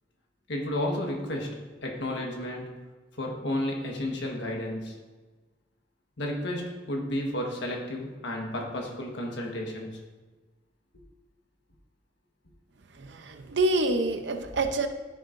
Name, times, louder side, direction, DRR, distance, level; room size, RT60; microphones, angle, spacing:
voice 1, 0.5-2.7 3.1-5.0 6.2-10.0, left 1 dB, 70° left, 0 dB, 1.3 m, -32 dB
voice 2, 13.0-14.9, right 2 dB, 70° right, 7 dB, 0.7 m, -27 dB
14.0 x 6.5 x 2.6 m, 1.3 s
head